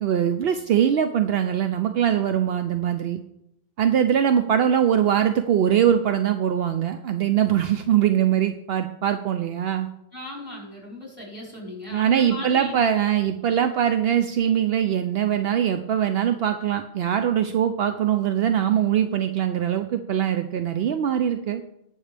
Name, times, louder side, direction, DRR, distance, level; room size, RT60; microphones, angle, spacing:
voice 1, 0.0-3.2 3.8-9.9 11.9-21.6, right 9 dB, 70° right, 8 dB, 0.8 m, -22 dB
voice 2, 10.1-12.8, left 2 dB, 10° right, -4 dB, 4.1 m, -37 dB
19.5 x 6.5 x 3.4 m, 0.81 s
omnidirectional pair, 1.1 m